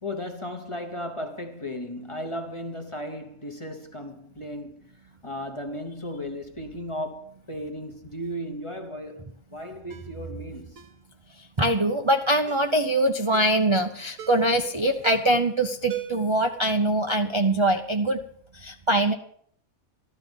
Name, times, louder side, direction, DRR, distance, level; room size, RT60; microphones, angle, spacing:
voice 1, 0.0-4.9 5.2-10.8, equal, 25° left, 1.0 m, -35 dB
Ringtone, 9.9-10.1 10.8-11.0 11.6-11.9 12.5-12.7 13.3-13.6 14.2-14.5 15.0-15.4 15.9-16.3 16.7-16.8, right 10 dB, 70° right, 1.3 m, -40 dB
voice 2, 11.6-18.2 18.5-19.1, right 1 dB, 30° right, 0.6 m, -23 dB
14.0 x 12.5 x 5.3 m
omnidirectional pair, 1.4 m